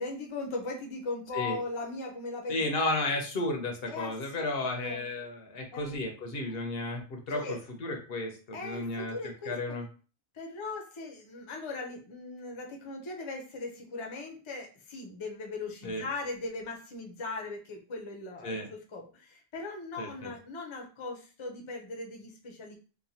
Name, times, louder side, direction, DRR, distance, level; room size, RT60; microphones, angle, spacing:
voice 1, 0.0-2.6 3.9-5.0 5.7-5.9 7.3-7.6 8.5-9.8 10.3-22.8, left 3 dB, 35° left, 1 dB, 0.5 m, -39 dB
voice 2, 2.5-9.8 15.8-16.0 18.4-18.7 20.0-20.3, left 2 dB, 70° left, 3 dB, 0.9 m, -33 dB
3.0 x 2.2 x 2.7 m, 0.36 s
omnidirectional pair, 1.0 m